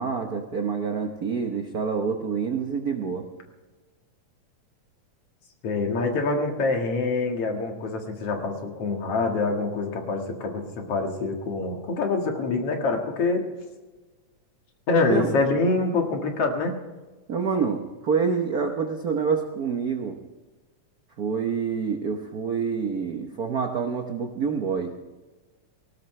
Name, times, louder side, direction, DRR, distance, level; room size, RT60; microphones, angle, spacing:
voice 1, 0.0-3.2 15.1-15.3 17.3-20.2 21.2-24.9, right 5 dB, 80° right, 4 dB, 0.8 m, -27 dB
voice 2, 5.6-13.5 14.9-16.8, left 3 dB, 55° left, 2 dB, 2.7 m, -25 dB
19.0 x 18.5 x 3.3 m, 1.2 s
omnidirectional pair, 3.3 m